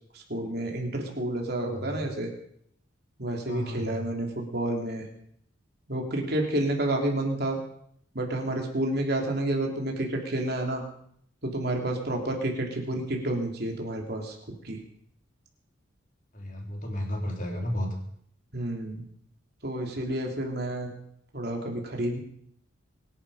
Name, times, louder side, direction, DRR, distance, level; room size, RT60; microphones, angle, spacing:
voice 1, 0.1-2.3 3.2-5.1 5.9-7.6 8.1-10.8 11.4-14.3 14.6-14.8 18.5-19.0 19.6-20.9 21.3-22.2, right 1 dB, 50° right, 1 dB, 3.4 m, -30 dB
voice 2, 1.7-2.1 3.5-4.0 16.3-17.9, equal, 40° left, 1 dB, 3.8 m, -33 dB
24.5 x 11.0 x 5.1 m, 0.67 s
head